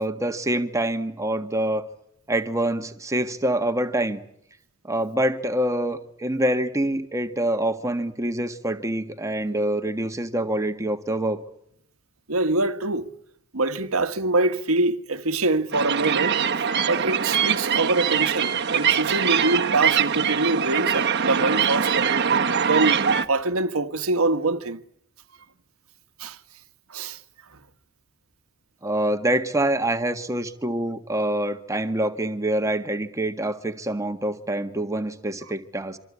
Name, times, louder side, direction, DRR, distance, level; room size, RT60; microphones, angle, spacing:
voice 1, 0.0-1.8 2.3-4.2 4.8-11.4 28.8-36.0, right 1 dB, 15° right, 1.6 m, -25 dB
voice 2, 12.3-13.1 13.5-16.4 16.9-22.1 22.6-24.8 26.2-26.4 26.9-27.2 27.5-27.6, right 2 dB, 75° right, 1.4 m, -24 dB
sound 1, 15.7-23.3, right 7 dB, 50° right, 1.3 m, -23 dB
26.5 x 25.0 x 8.4 m
head